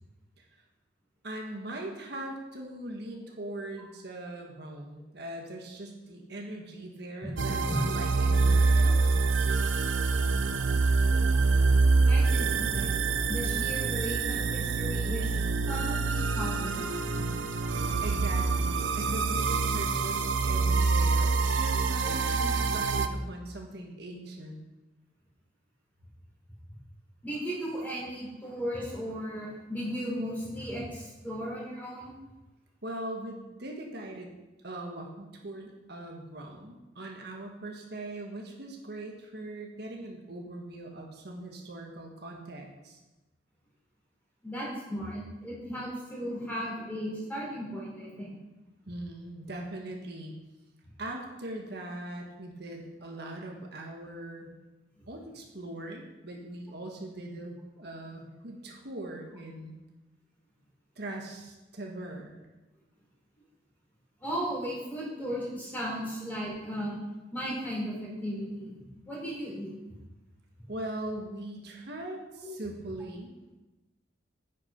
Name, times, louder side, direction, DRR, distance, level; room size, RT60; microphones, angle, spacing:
voice 1, 1.2-9.2 14.9-15.0 15.3-15.5 18.0-24.6 32.8-34.3 34.6-43.0 48.9-50.4 51.0-54.5 55.1-59.8 60.9-62.5 70.7-73.5, right 1 dB, 60° right, 1 dB, 1.5 m, -40 dB
voice 2, 3.5-3.9 7.2-7.3 7.7-7.8 12.0-12.9 13.3-15.3 15.7-17.2 22.0-22.1 27.2-32.1 44.4-48.3 64.2-66.9 67.3-68.8 69.1-70.0 72.4-72.5, equal, 10° left, -5 dB, 4.3 m, -36 dB
sound 1, 7.4-23.1, right 4 dB, 85° right, 0.7 m, -26 dB
9.7 x 8.5 x 5.2 m, 1.1 s
head